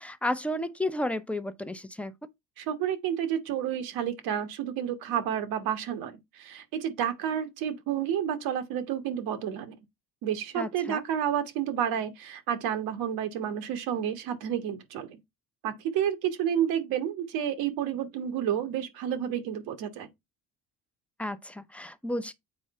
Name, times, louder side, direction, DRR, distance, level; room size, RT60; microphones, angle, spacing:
voice 1, 0.0-2.1 10.5-11.0 21.2-22.3, left 1 dB, 5° left, 0.6 m, -32 dB
voice 2, 2.6-9.8 10.2-15.2 15.6-20.1, right 9 dB, 85° right, 1.5 m, -30 dB
7.7 x 4.6 x 4.2 m
cardioid pair, 130°, 35 cm